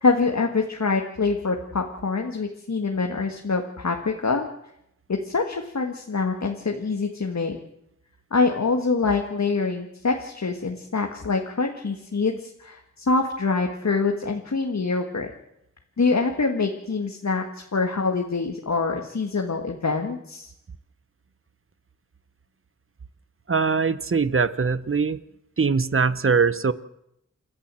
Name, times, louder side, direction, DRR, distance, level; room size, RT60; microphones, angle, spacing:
voice 1, 0.0-4.5 5.1-7.6 8.3-15.3 16.0-20.5, left 4 dB, 60° left, 3 dB, 1.8 m, -25 dB
voice 2, 23.5-25.2 25.6-26.7, right 5 dB, 45° right, 16 dB, 0.9 m, -22 dB
29.0 x 12.0 x 7.6 m, 0.81 s
wide cardioid pair, 70°, 31 cm